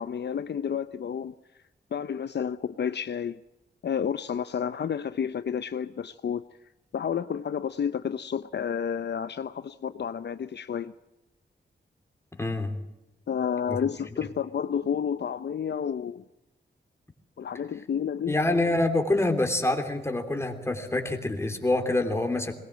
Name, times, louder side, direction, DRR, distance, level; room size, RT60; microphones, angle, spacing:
voice 1, 0.0-1.3 1.9-3.4 3.8-6.4 6.9-10.9 13.3-16.2 17.4-18.4, left 7 dB, 70° left, 0.7 m, -30 dB
voice 2, 12.3-12.8 13.7-13.8 18.3-22.5, left 2 dB, 15° left, 3.3 m, -26 dB
22.0 x 20.0 x 7.4 m
wide cardioid pair, 120°, 18 cm